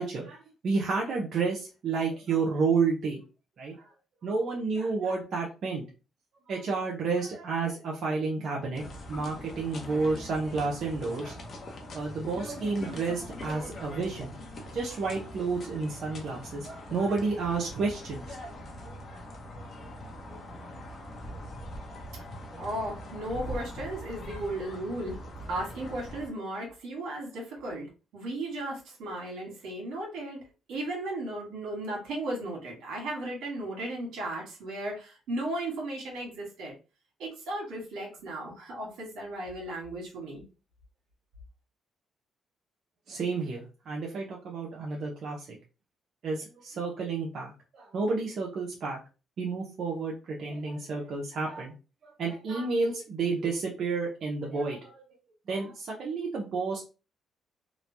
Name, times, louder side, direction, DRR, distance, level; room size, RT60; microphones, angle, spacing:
voice 1, 0.0-3.2 3.6-3.7 4.2-5.8 6.5-8.8 9.1-11.4 11.9-14.3 14.7-18.5 43.1-45.6 46.2-49.0 49.4-51.7 52.0-55.0 55.5-56.8, right 4 dB, 60° right, -3 dB, 0.7 m, -31 dB
sound 1, 8.7-26.3, left 1 dB, 50° left, 0.8 m, -42 dB
voice 2, 22.6-25.2 25.5-27.9 28.1-30.4 30.7-36.7 37.2-40.4, right 1 dB, 85° right, 0 dB, 1.2 m, -35 dB
3.0 x 2.2 x 2.6 m, 0.32 s
cardioid pair, 90°, 0 cm